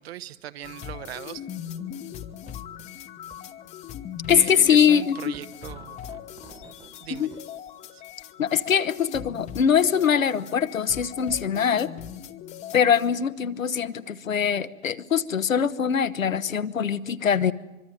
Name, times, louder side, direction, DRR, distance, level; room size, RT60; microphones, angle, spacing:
voice 1, 0.0-1.4 4.3-6.0 7.0-7.3 7.9-8.0, right 12 dB, 50° right, 15 dB, 1.1 m, -39 dB
sound 1, 0.6-13.1, left 9 dB, 15° left, 1.0 m, -40 dB
sound 2, 1.7-2.0 2.3-2.9 3.3-3.4 3.6-3.7 4.5-6.9 7.3-7.5, right 5 dB, 15° right, 1.5 m, -50 dB
voice 2, 4.3-5.2 7.1-7.3 8.4-11.9 12.7-17.5, left 7 dB, 75° left, 12 dB, 1.2 m, -22 dB
24.5 x 23.5 x 9.2 m, 1.0 s
figure-of-eight pair, 115°, 40 cm